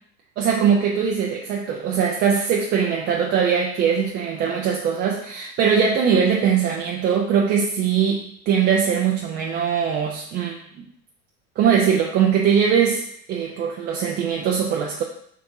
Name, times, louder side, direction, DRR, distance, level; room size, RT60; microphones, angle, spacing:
voice 1, 0.4-10.8 11.6-13.0 13.3-15.0, right 7 dB, 25° right, -1 dB, 0.3 m, -21 dB
3.5 x 2.6 x 4.5 m, 0.67 s
hypercardioid pair, 100°, 44 cm